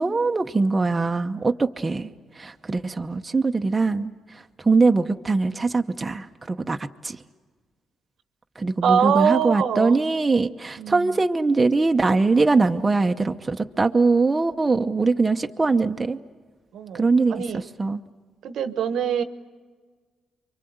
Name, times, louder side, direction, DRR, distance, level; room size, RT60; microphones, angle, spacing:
voice 1, 0.0-7.2 8.6-16.2 16.9-18.0, right 3 dB, 20° right, 5 dB, 0.9 m, -22 dB
voice 2, 8.8-10.0 10.8-11.1 16.7-17.6 18.4-19.2, right 8 dB, 75° right, 10 dB, 1.1 m, -24 dB
28.5 x 24.0 x 8.0 m, 1.5 s
cardioid pair, 90°, 0 cm